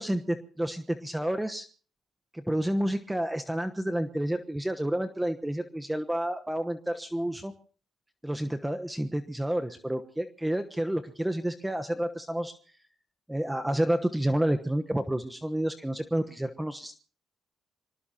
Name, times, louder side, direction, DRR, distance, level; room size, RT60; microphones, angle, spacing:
voice 1, 0.0-1.7 2.3-7.5 8.2-12.5 13.3-16.9, right 1 dB, 5° right, 7 dB, 1.1 m, -30 dB
26.0 x 18.5 x 2.9 m, 0.42 s
cardioid pair, 90°, 0 cm